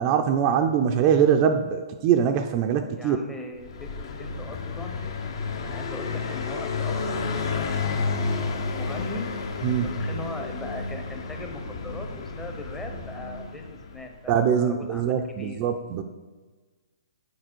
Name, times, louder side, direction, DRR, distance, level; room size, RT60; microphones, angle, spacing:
voice 1, 0.0-3.2 9.6-9.9 14.3-16.0, right 8 dB, 35° right, 5 dB, 0.4 m, -22 dB
voice 2, 3.0-5.0 5.5-8.1 8.7-9.3 9.8-12.1 12.4-15.7, left 2 dB, 10° left, 3 dB, 0.6 m, -40 dB
Car passing by, 3.6-14.2, left 4 dB, 60° left, 0.8 m, -31 dB
6.7 x 4.3 x 4.4 m, 1.3 s
hypercardioid pair, 140°, 3 cm